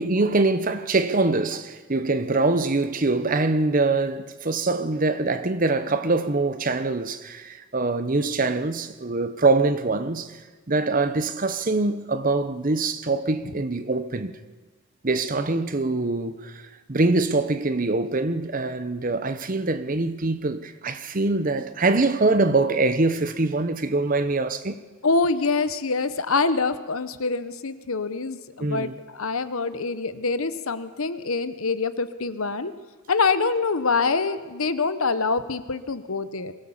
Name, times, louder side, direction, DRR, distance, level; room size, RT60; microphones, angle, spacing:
voice 1, 0.0-10.4 10.7-14.4 15.0-16.6 16.9-24.8 28.6-29.0, right 3 dB, 40° right, 0.9 m, -24 dB
voice 2, 25.0-32.7 33.1-36.5, left 4 dB, 75° left, 1.0 m, -25 dB
23.0 x 17.0 x 7.2 m
head